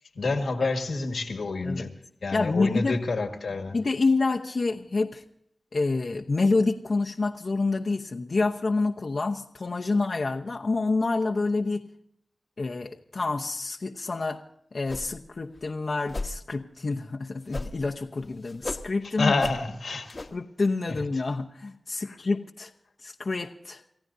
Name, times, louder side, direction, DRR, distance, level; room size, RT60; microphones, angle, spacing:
voice 1, 0.2-2.0 2.2-3.8 19.0-20.3 20.9-21.0 22.0-22.2, left 3 dB, 90° left, 1.7 m, -28 dB
voice 2, 2.3-3.0 3.7-5.2 5.7-11.8 12.6-14.4 14.7-19.4 20.3-22.7 23.0-23.8, left 3 dB, 65° left, 0.9 m, -27 dB
sound 1, 14.9-15.3 15.6-15.7 16.1-16.4 17.5-17.9 18.2-18.9 19.4-19.6 20.1-20.3, left 2 dB, 50° left, 1.1 m, -34 dB
29.0 x 15.0 x 2.7 m
cardioid pair, 55°, 0 cm